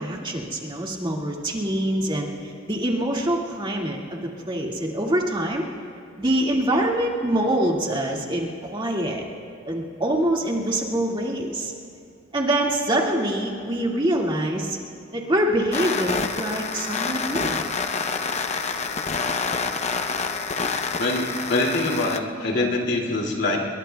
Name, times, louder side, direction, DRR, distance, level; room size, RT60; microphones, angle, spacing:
voice 1, 0.0-4.2 4.5-5.7 6.2-9.3 9.7-11.7 12.3-14.8 15.1-17.6, right 1 dB, 25° right, -1 dB, 2.0 m, -25 dB
sound 1, 15.7-22.2, left 4 dB, 35° left, 0.7 m, -27 dB
voice 2, 21.0-23.6, left 2 dB, 60° left, 1 dB, 2.4 m, -24 dB
28.0 x 22.0 x 2.3 m, 2.5 s
head